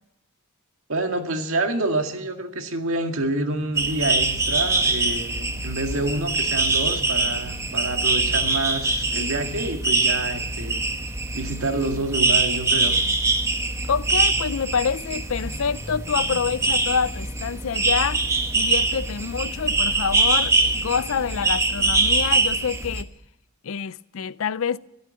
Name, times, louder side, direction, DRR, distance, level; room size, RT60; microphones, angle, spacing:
voice 1, 0.9-10.8 11.3-13.0, right 2 dB, 65° right, 1.9 m, -27 dB
sound 1, 3.7-23.0, right 3 dB, 15° right, 0.9 m, -23 dB
voice 2, 13.9-18.2 18.5-23.1 23.6-24.8, left 6 dB, 65° left, 0.5 m, -26 dB
13.0 x 13.0 x 7.5 m
head